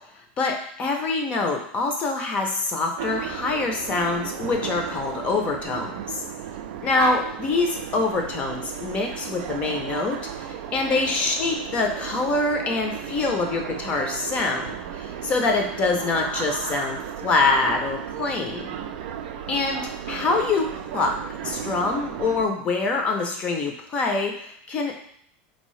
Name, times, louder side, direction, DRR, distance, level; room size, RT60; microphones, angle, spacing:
voice 1, 0.4-6.2 6.8-18.7 19.5-20.7 20.9-21.1 21.4-25.0, left 3 dB, 25° left, 2 dB, 0.5 m, -25 dB
sound 1, 3.0-22.5, right 9 dB, 75° right, 0.4 m, -34 dB
4.0 x 2.7 x 3.1 m, 0.65 s
supercardioid pair, 165°, 5 cm